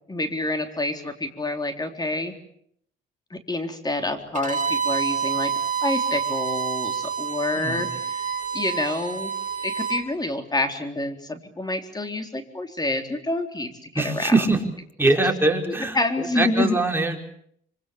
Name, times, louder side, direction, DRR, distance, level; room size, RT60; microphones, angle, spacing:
voice 1, 0.1-2.4 3.3-5.5 5.8-8.2 8.5-9.3 9.6-13.7 13.9-14.3 15.9-16.7, left 2 dB, 20° left, 6 dB, 3.9 m, -27 dB
Bowed string instrument, 4.3-10.0, right 7 dB, 40° right, 5.1 m, -28 dB
voice 2, 7.5-8.0 13.9-14.6 15.0-17.2, right 2 dB, 10° right, 2 dB, 4.9 m, -23 dB
25.5 x 25.5 x 7.2 m, 0.67 s
cardioid pair, 90°, 20 cm